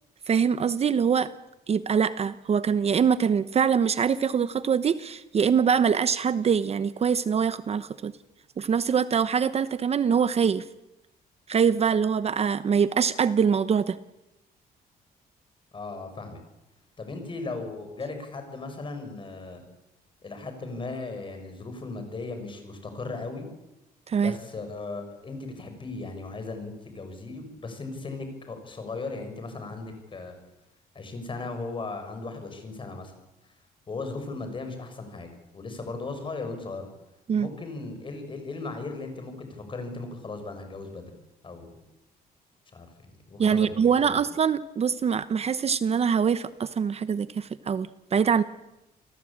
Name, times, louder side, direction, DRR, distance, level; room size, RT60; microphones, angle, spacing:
voice 1, 0.3-1.3 1.7-8.1 8.6-10.6 11.5-14.0 24.1-24.3 37.3-37.5 43.4-48.4, right 7 dB, 40° right, 14 dB, 0.9 m, -24 dB
voice 2, 15.7-16.4 17.0-19.6 20.2-23.5 24.1-30.4 30.9-33.1 33.9-36.9 37.4-41.1 41.4-41.8 42.7-42.9 43.3-44.1, left 3 dB, 30° left, 6 dB, 6.6 m, -37 dB
29.0 x 18.5 x 8.8 m, 0.93 s
cardioid pair, 125°, 16 cm